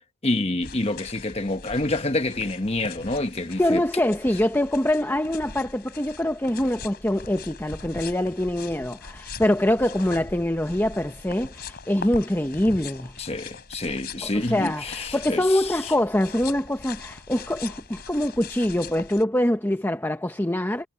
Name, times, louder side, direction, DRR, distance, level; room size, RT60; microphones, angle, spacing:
voice 1, 0.2-3.8 13.2-15.8, left 2 dB, 25° left, 1.3 m, -27 dB
sound 1, 0.6-19.2, left 4 dB, 45° left, 4.2 m, -41 dB
voice 2, 3.6-13.2 14.2-20.9, left 1 dB, 10° left, 0.9 m, -24 dB
head